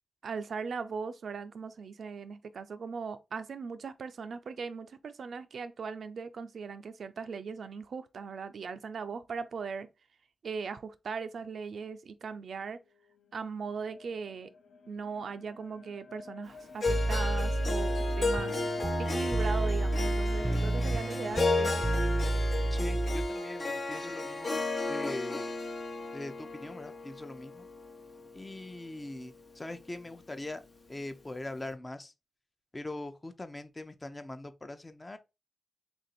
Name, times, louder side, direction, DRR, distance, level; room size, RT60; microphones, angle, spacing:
voice 1, 0.2-9.9 10.4-12.8 13.3-14.5 14.9-18.6 19.0-21.9, right 5 dB, 70° right, 0.3 m, -39 dB
sound 1, 13.1-21.8, left 4 dB, 85° left, 0.6 m, -47 dB
Harp, 16.8-29.0, left 2 dB, 60° left, 0.9 m, -34 dB
sound 2, 16.9-23.3, right 2 dB, 20° right, 0.6 m, -30 dB
voice 2, 22.7-25.5 26.1-27.7 28.3-30.6 30.9-32.1 32.7-35.2, left 2 dB, 30° left, 0.6 m, -42 dB
2.9 x 2.6 x 4.1 m
supercardioid pair, 45°, 0 cm